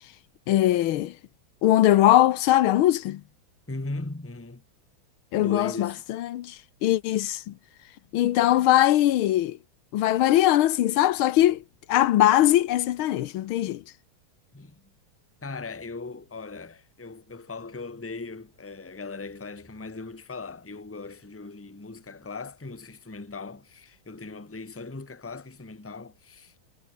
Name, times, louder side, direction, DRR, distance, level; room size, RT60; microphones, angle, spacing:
voice 1, 0.5-1.1 1.6-3.2 5.3-6.6 6.8-7.5 8.1-9.6 9.9-11.6 11.9-13.8, left 13 dB, 90° left, 1.7 m, -21 dB
voice 2, 3.7-4.6 5.4-6.0 14.5-14.8 15.4-26.6, left 3 dB, 10° left, 1.2 m, -39 dB
omnidirectional pair, 2.2 m